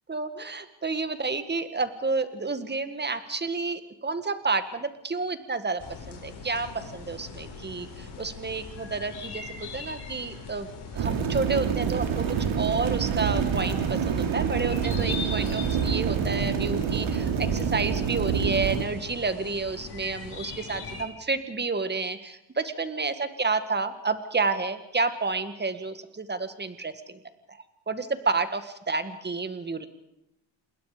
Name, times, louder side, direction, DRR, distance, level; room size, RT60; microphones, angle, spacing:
voice 1, 0.1-5.8 6.1-10.7 10.9-12.3 12.6-27.2 27.9-29.9, right 4 dB, 20° right, 10 dB, 1.9 m, -30 dB
sound 1, 5.8-21.0, left 4 dB, 50° left, 6.0 m, -41 dB
sound 2, 11.0-18.8, right 7 dB, 70° right, 2.9 m, -27 dB
28.0 x 21.0 x 5.1 m, 0.84 s
cardioid pair, 100°, 50 cm